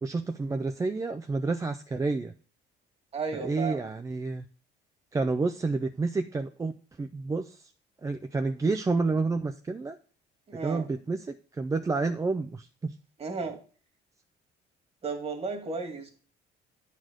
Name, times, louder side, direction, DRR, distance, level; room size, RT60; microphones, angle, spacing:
voice 1, 0.0-2.3 3.4-4.4 5.1-7.7 8.0-10.0 10.6-12.9, right 3 dB, 20° right, 0.5 m, -29 dB
voice 2, 3.1-3.9 10.5-10.9 13.2-13.6 15.0-16.1, right 4 dB, 35° right, 2.1 m, -34 dB
8.9 x 4.2 x 6.3 m
cardioid pair, 110°, 17 cm